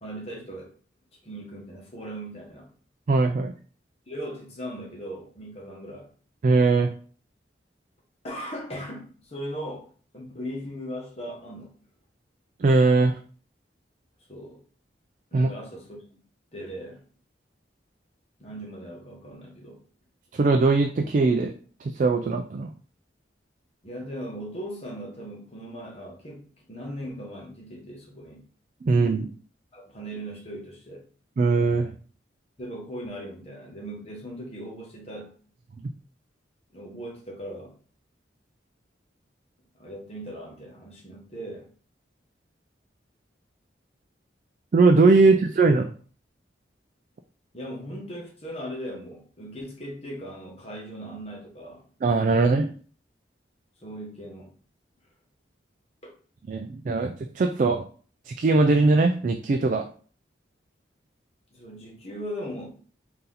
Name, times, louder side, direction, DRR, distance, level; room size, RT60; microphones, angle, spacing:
voice 1, 0.0-0.7 1.2-2.7 4.1-6.1 8.2-9.9 10.1-11.8 14.3-14.6 15.3-16.0 16.5-17.0 18.4-19.8 23.8-28.4 29.7-31.0 32.6-35.3 36.7-37.8 39.7-41.7 45.3-45.4 47.5-51.9 53.8-54.6 56.0-56.2 61.5-62.7, equal, 35° left, 1.2 m, -38 dB
voice 2, 3.1-3.5 6.4-6.9 12.6-13.2 15.3-15.5 20.3-21.5 21.8-22.7 28.8-29.3 31.4-31.9 44.7-45.9 52.0-52.7 56.5-57.8 58.3-59.8, right 3 dB, 45° right, 0.3 m, -20 dB
4.1 x 2.7 x 3.8 m
head